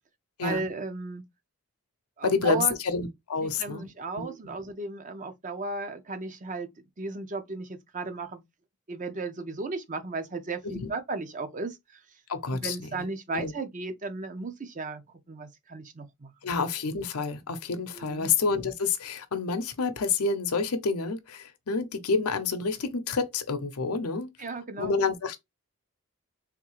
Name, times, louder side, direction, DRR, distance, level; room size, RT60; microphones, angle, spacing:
voice 1, 0.4-1.2 2.2-2.7 3.4-8.4 8.9-12.0 12.5-15.0 15.3-16.3 17.9-18.3 24.4-24.9, right 3 dB, 35° right, 0.6 m, -35 dB
voice 2, 2.2-3.9 4.2-4.3 10.6-10.9 12.3-12.8 13.3-13.5 16.4-24.3 24.8-25.4, left 4 dB, 90° left, 0.7 m, -28 dB
3.6 x 2.7 x 3.0 m
head